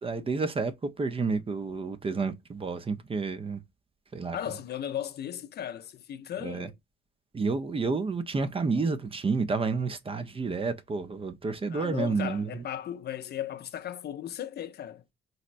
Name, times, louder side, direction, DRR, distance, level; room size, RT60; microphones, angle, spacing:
voice 1, 0.0-3.6 4.1-4.4 6.4-6.7 7.3-12.6, right 4 dB, 30° right, 0.5 m, -30 dB
voice 2, 4.3-6.8 11.7-15.0, left 10 dB, 55° left, 0.5 m, -36 dB
4.1 x 2.1 x 2.5 m
cardioid pair, 90°, 20 cm